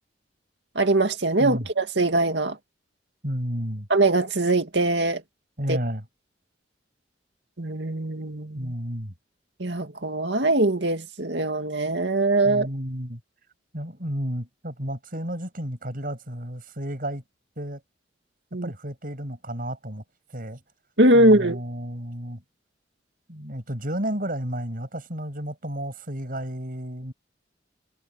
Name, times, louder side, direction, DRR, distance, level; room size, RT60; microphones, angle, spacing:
voice 1, 0.8-2.6 3.9-5.2 5.7-5.8 7.6-8.7 9.6-12.7 18.5-18.7 21.0-21.6, right 2 dB, 65° right, 2.3 m, -22 dB
voice 2, 3.2-3.9 5.6-6.0 8.5-9.1 12.5-13.2 13.7-17.2 17.6-17.8 18.6-20.0 20.3-20.6 21.1-22.4 23.3-27.1, equal, 50° right, 7.2 m, -32 dB
head